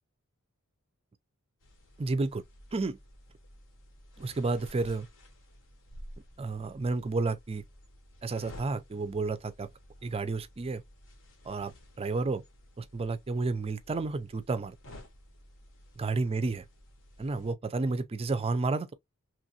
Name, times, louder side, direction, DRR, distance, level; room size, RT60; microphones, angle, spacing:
sound 1, 1.6-17.5, left 1 dB, 60° left, 0.9 m, -53 dB
voice 1, 2.0-2.4 2.7-3.0 4.2-5.1 6.4-7.6 8.2-9.7 10.0-10.8 11.4-12.4 12.8-14.8 16.0-16.7 17.2-18.9, right 3 dB, 25° right, 0.4 m, -31 dB
3.0 x 2.5 x 2.7 m
head